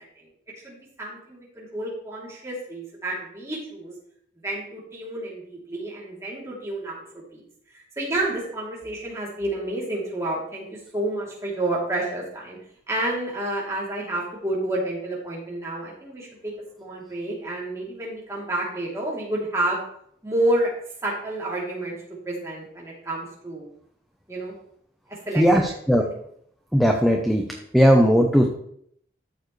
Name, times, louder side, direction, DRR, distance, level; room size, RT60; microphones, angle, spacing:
voice 1, 0.6-3.9 4.4-7.0 7.3-7.4 7.7-12.6 12.9-16.5 16.8-19.8 20.2-20.7 21.0-21.9 22.2-23.7 24.3-24.5 25.1-25.4 25.9-26.1, right 1 dB, 15° right, -5 dB, 3.0 m, -29 dB
voice 2, 25.4-26.0 26.7-28.5, equal, ahead, 2 dB, 0.7 m, -18 dB
13.5 x 7.1 x 3.2 m, 0.67 s
head